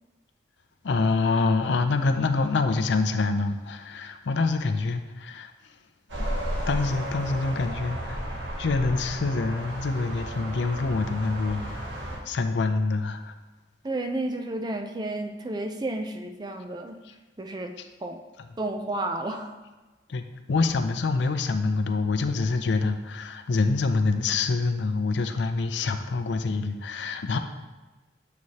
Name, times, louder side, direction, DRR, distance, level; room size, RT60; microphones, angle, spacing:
voice 1, 0.8-5.5 6.7-8.2 8.6-11.8 12.3-13.3 20.1-20.2 20.5-27.4, left 3 dB, 70° left, 8 dB, 0.4 m, -26 dB
sound 1, 6.1-12.2, right 1 dB, 80° right, 1.3 m, -33 dB
voice 2, 13.8-17.0 17.4-18.2 18.6-19.5, right 2 dB, 20° right, 4 dB, 0.4 m, -32 dB
7.6 x 4.7 x 2.8 m, 1.2 s
head